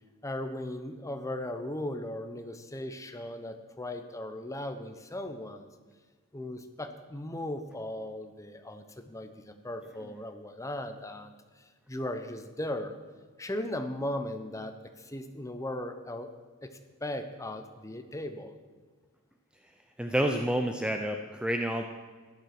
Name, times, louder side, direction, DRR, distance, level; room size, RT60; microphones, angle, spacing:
voice 1, 0.2-5.7 6.3-12.9 13.4-16.3 16.6-18.6, left 1 dB, 15° left, 7 dB, 1.0 m, -37 dB
voice 2, 20.0-21.8, right 1 dB, 5° right, 5 dB, 0.6 m, -29 dB
13.5 x 11.0 x 6.1 m, 1.4 s
head